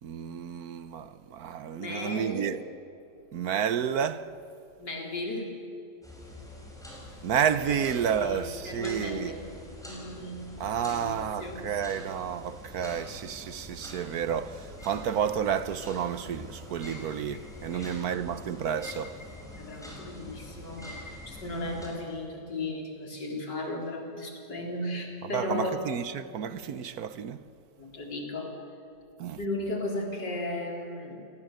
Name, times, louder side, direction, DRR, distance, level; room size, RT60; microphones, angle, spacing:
voice 1, 0.0-2.6 3.3-4.3 7.2-9.3 10.6-19.2 25.3-27.4 29.2-29.4, right 8 dB, 65° right, 1.3 m, -30 dB
voice 2, 1.7-2.6 4.8-5.6 7.7-7.8 8.2-9.5 9.8-11.7 17.7-18.1 19.6-25.9 27.8-28.6 29.4-31.2, left 1 dB, 85° left, 4.6 m, -36 dB
sound 1, 6.0-21.9, left 1 dB, ahead, 5.7 m, -45 dB
sound 2, 14.8-16.1 16.8-18.1 18.4-22.1, left 2 dB, 40° left, 1.9 m, -51 dB
29.0 x 19.0 x 7.8 m
omnidirectional pair, 1.8 m